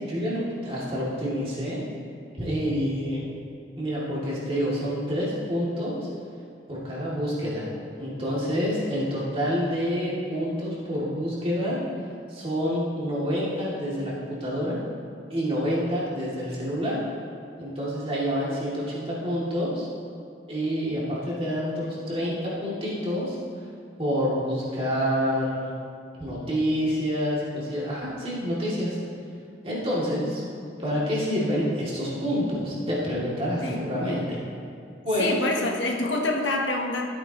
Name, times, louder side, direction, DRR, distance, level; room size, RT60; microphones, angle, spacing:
voice 1, 0.0-1.8 2.4-3.2 3.8-5.9 6.7-7.7 8.0-11.8 12.3-14.8 15.3-17.0 17.6-19.9 20.5-23.4 24.0-25.6 26.2-29.0 29.6-30.4 30.8-34.4 35.0-35.4, equal, 30° right, -7 dB, 2.5 m, -27 dB
voice 2, 35.2-37.1, left 2 dB, 80° left, 1 dB, 1.1 m, -26 dB
14.5 x 8.8 x 3.0 m, 2.4 s
head